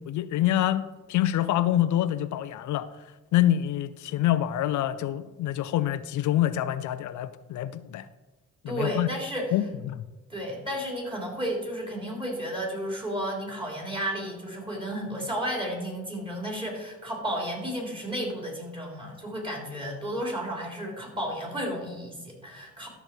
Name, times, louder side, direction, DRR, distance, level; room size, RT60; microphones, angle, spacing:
voice 1, 0.1-0.8 1.1-2.9 3.3-8.1 8.6-9.1 9.5-10.0, left 12 dB, 75° left, 13 dB, 0.5 m, -26 dB
voice 2, 8.7-9.5 10.3-22.9, equal, 15° right, -1 dB, 3.6 m, -32 dB
13.0 x 6.5 x 4.5 m, 1.2 s
cardioid pair, 90°, 30 cm